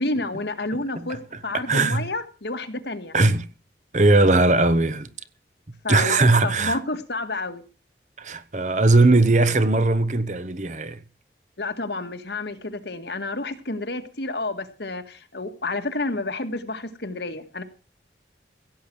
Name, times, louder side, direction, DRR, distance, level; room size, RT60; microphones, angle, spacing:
voice 1, 0.0-3.2 5.8-7.6 11.6-17.6, left 2 dB, 70° left, 1.8 m, -30 dB
voice 2, 1.5-2.0 3.1-3.5 3.9-5.1 5.9-6.8 8.2-11.0, right 2 dB, 40° right, 1.0 m, -19 dB
16.5 x 8.5 x 6.2 m
head